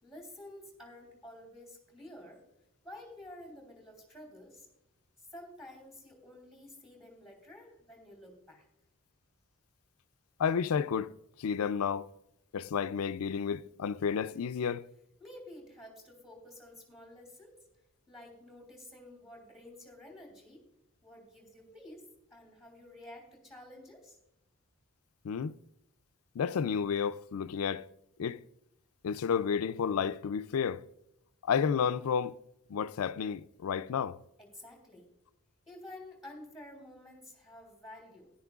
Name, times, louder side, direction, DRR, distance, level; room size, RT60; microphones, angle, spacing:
voice 1, 0.0-2.4 2.8-4.7 5.3-8.7 15.2-17.6 18.1-20.6 21.0-22.0 22.3-24.2 34.4-35.1 35.7-38.3, left 1 dB, ahead, 3.1 m, -51 dB
voice 2, 10.4-11.1 11.4-12.1 12.5-14.9 25.2-25.6 26.4-27.9 28.2-28.4 29.0-30.8 31.5-32.3 32.7-34.2, left 7 dB, 90° left, 0.4 m, -31 dB
16.0 x 11.0 x 2.4 m
head